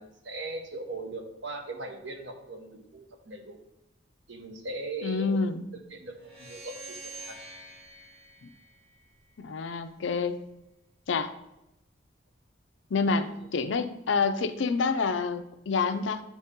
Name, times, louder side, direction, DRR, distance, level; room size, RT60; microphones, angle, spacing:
voice 1, 0.0-3.6 4.3-5.4 5.7-7.0 7.3-7.4 13.1-13.3, right 2 dB, 65° right, 4 dB, 0.9 m, -39 dB
voice 2, 5.0-5.6 9.4-10.4 11.1-11.3 12.9-13.3 13.5-16.2, left 4 dB, 70° left, 10 dB, 0.5 m, -27 dB
sound 1, 6.2-9.5, right 2 dB, 25° right, 2.6 m, -46 dB
9.5 x 4.1 x 3.6 m, 0.88 s
head